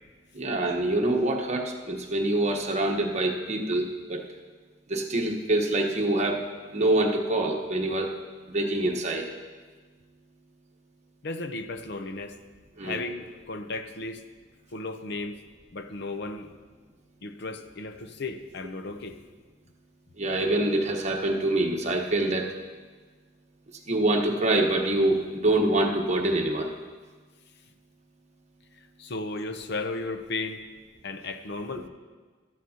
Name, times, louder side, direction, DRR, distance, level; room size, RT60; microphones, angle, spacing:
voice 1, 0.3-4.2 4.9-6.4 6.7-8.1 8.5-9.3 12.8-13.0 20.2-22.5 23.9-26.7, right 2 dB, 40° right, 1 dB, 1.2 m, -25 dB
voice 2, 11.2-12.4 12.8-14.2 14.7-15.4 15.7-16.5 17.2-19.2 29.0-30.6 31.0-31.9, left 3 dB, 60° left, 9 dB, 0.7 m, -35 dB
13.5 x 12.5 x 2.9 m, 1.4 s
head